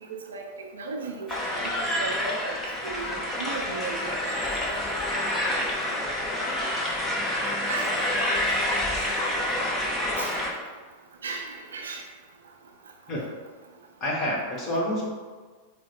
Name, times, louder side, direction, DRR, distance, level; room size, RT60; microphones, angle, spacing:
voice 1, 0.0-2.6 2.8-4.4 7.7-7.9 10.2-10.3 11.2-12.1, right 4 dB, 65° right, 2 dB, 0.5 m, -36 dB
sound 1, 1.3-10.5, left 1 dB, 15° left, 0.8 m, -28 dB
voice 2, 14.0-15.1, left 1 dB, 30° left, -3 dB, 1.2 m, -28 dB
4.4 x 2.1 x 4.5 m, 1.5 s
figure-of-eight pair, 90°, 0 cm